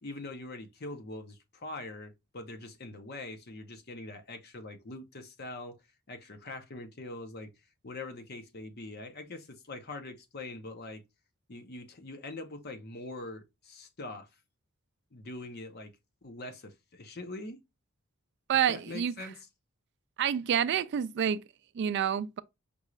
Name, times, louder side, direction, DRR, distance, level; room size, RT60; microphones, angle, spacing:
voice 1, 0.0-5.8 6.1-7.5 7.8-11.0 11.5-14.3 15.1-15.9 16.2-17.6 18.7-19.3, left 2 dB, 50° left, 0.8 m, -43 dB
voice 2, 18.5-19.1 20.2-21.4 21.7-22.4, right 9 dB, 55° right, 0.3 m, -28 dB
5.3 x 2.5 x 3.1 m
head